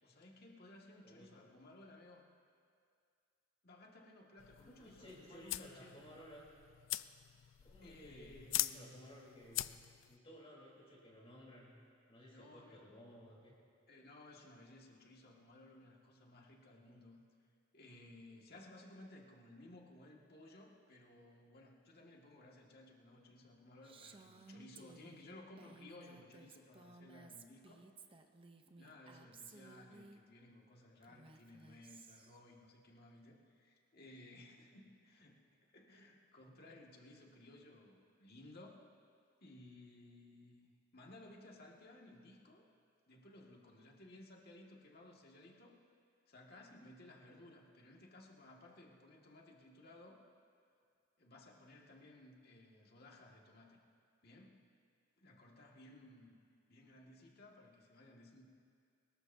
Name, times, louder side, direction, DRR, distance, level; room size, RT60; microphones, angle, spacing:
voice 1, 0.0-2.3 3.6-6.0 7.8-9.1 12.3-12.9 13.9-17.2 17.7-27.9 28.8-35.4 35.7-38.8 39.4-42.7 43.1-45.8 46.3-50.2 51.2-53.8 54.2-54.6 55.2-56.4 56.7-58.4, left 1 dB, 55° left, -1 dB, 2.0 m, -58 dB
voice 2, 1.0-1.4 4.7-6.5 7.6-9.7 10.1-11.8 12.1-13.5, equal, 30° left, -5 dB, 3.7 m, -57 dB
sound 1, 4.4-10.1, left 15 dB, 80° left, 0.4 m, -43 dB
Female speech woman speaking, 23.8-30.2 31.0-32.4, right 3 dB, 30° right, 0.8 m, -58 dB
24.0 x 20.5 x 2.7 m, 2.2 s
head